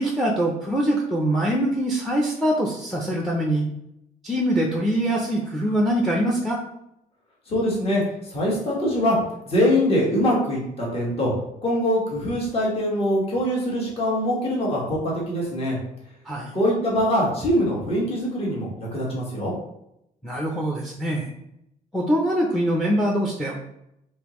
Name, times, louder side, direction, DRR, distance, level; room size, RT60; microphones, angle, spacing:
voice 1, 0.0-3.7 4.2-6.6 16.3-16.5 20.2-21.3 21.9-23.6, right 1 dB, ahead, 0 dB, 0.5 m, -23 dB
voice 2, 7.5-8.0 8.3-9.2 9.5-11.3 11.6-15.8 16.5-19.5, equal, 35° left, -4 dB, 1.4 m, -23 dB
3.4 x 3.1 x 3.0 m, 0.78 s
cardioid pair, 110°, 17 cm